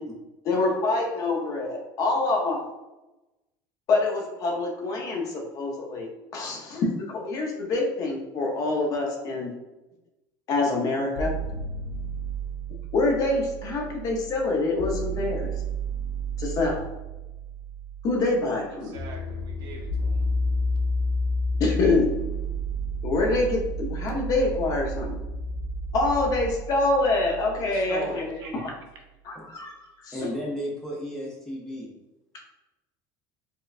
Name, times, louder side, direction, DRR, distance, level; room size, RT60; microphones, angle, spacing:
voice 1, 0.5-2.6 3.9-9.5 10.5-11.3 12.9-15.5 16.4-16.8 18.0-19.0 21.6-22.1 23.0-25.1 25.9-28.7 29.2-29.7 30.0-30.2 32.3-32.4, left 2 dB, 40° left, 0 dB, 0.7 m, -26 dB
sound 1, 11.2-29.1, right 1 dB, 80° left, 0.5 m, -31 dB
voice 2, 18.8-20.2 27.6-28.6, right 3 dB, 50° right, 2 dB, 0.7 m, -39 dB
voice 3, 30.1-31.9, equal, 5° left, -3 dB, 0.5 m, -34 dB
4.4 x 2.1 x 2.4 m, 1.0 s
cardioid pair, 160°, 9 cm